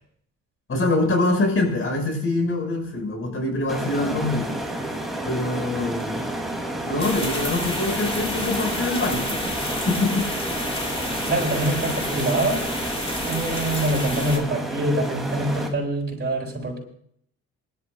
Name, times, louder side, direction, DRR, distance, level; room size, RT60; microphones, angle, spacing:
voice 1, 0.7-4.6 5.3-6.2 6.9-9.5 9.9-10.3, left 2 dB, 45° left, 3 dB, 5.8 m, -24 dB
sound 1, 3.7-15.7, right 1 dB, ahead, 2.9 m, -30 dB
sound 2, 7.0-14.4, left 1 dB, 20° left, 3.3 m, -30 dB
voice 2, 11.2-12.7 13.2-16.8, right 1 dB, 35° right, 0 dB, 7.7 m, -25 dB
27.5 x 12.5 x 2.5 m, 0.64 s
cardioid pair, 90°, 30 cm